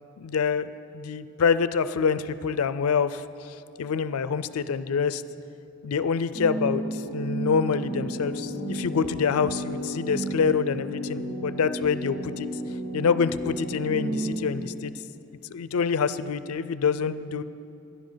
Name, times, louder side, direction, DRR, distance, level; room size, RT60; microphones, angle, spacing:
voice 1, 0.2-5.2 5.8-12.5 12.9-14.9 15.5-17.4, left 6 dB, 85° left, 14 dB, 0.4 m, -26 dB
sound 1, 6.3-14.4, right 1 dB, 55° right, 1.9 m, -32 dB
16.0 x 11.0 x 3.9 m, 2.7 s
head